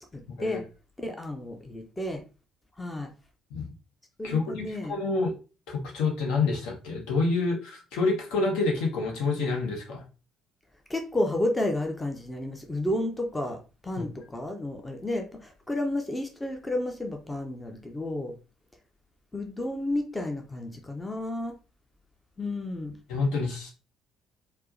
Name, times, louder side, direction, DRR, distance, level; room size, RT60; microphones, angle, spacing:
voice 1, 0.1-0.6 1.0-2.2 2.8-3.1 4.2-4.9 10.9-18.3 19.3-21.6 22.4-23.0, left 1 dB, 15° left, 0.6 m, -31 dB
voice 2, 4.2-5.3 5.7-10.0 14.0-14.1 23.1-23.7, left 3 dB, 65° left, 0.9 m, -28 dB
4.5 x 2.1 x 2.5 m
figure-of-eight pair, 50°, 0 cm